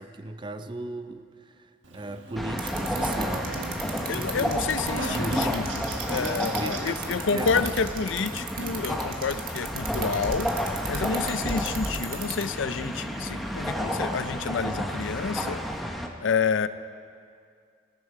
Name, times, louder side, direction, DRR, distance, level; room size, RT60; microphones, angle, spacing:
voice 1, 0.0-4.5 5.1-5.4 6.2-7.6, right 2 dB, 25° right, 9 dB, 0.5 m, -37 dB
Buzz, 1.8-15.8, right 2 dB, 75° right, 1.5 m, -42 dB
sound 1, 2.4-16.1, equal, ahead, 0.9 m, -31 dB
sound 2, 2.6-12.4, right 9 dB, 50° right, 1.7 m, -35 dB
voice 2, 4.1-10.5 10.9-15.6 16.2-16.7, left 5 dB, 75° left, 14 dB, 0.5 m, -29 dB
18.5 x 14.5 x 4.8 m, 2.2 s
head